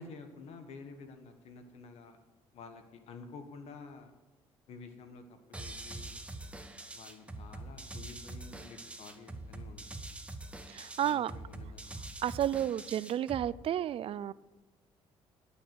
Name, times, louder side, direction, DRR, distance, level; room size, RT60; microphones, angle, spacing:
voice 1, 0.0-2.2 2.5-4.2 4.7-6.2 6.9-10.0 11.0-12.1, left 4 dB, 70° left, 7 dB, 1.6 m, -50 dB
sound 1, 5.5-13.5, right 2 dB, 10° right, 1.2 m, -44 dB
voice 2, 10.7-11.3 12.2-14.3, right 11 dB, 55° right, 20 dB, 0.4 m, -32 dB
11.5 x 6.1 x 7.9 m, 1.1 s
supercardioid pair, 80°, 11 cm